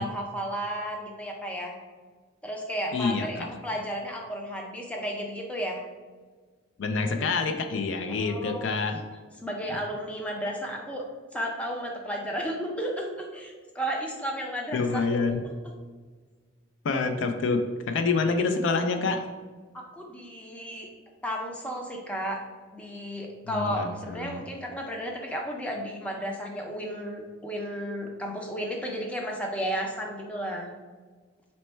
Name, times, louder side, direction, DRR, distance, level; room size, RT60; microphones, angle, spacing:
voice 1, 0.0-1.8 2.4-5.8 8.1-8.7 9.4-11.0 11.3-15.4 19.7-20.9 21.2-22.4 22.7-30.7, equal, 5° left, 0 dB, 0.5 m, -33 dB
voice 2, 2.9-3.5 6.8-9.0 14.7-15.4 16.8-19.3 23.5-24.4, left 4 dB, 65° left, 6 dB, 0.4 m, -27 dB
4.2 x 2.1 x 4.3 m, 1.4 s
head